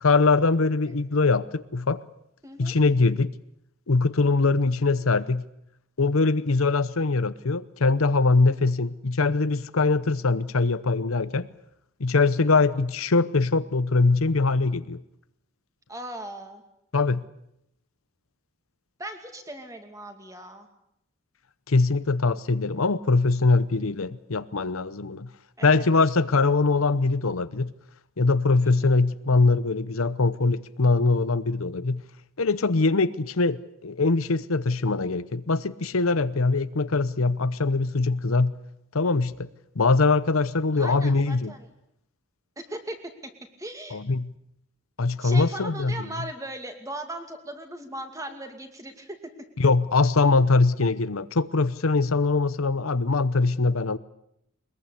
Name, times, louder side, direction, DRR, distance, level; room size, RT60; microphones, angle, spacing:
voice 1, 0.0-2.0 2.6-3.3 3.9-5.4 6.0-11.5 12.0-15.0 16.9-17.2 21.7-25.3 25.6-27.7 28.2-32.0 32.4-38.5 38.9-39.5 39.8-41.5 43.9-44.3 45.0-46.1 49.6-54.0, left 3 dB, 80° left, 15 dB, 0.9 m, -22 dB
voice 2, 2.4-2.8 4.8-5.0 8.4-8.7 12.4-12.5 15.9-16.6 19.0-20.7 25.6-25.9 28.6-28.9 40.7-41.7 42.6-43.0 43.2-43.3 43.6-44.0 45.2-49.2, right 1 dB, 15° right, 6 dB, 2.5 m, -38 dB
22.0 x 21.5 x 8.3 m, 0.78 s
head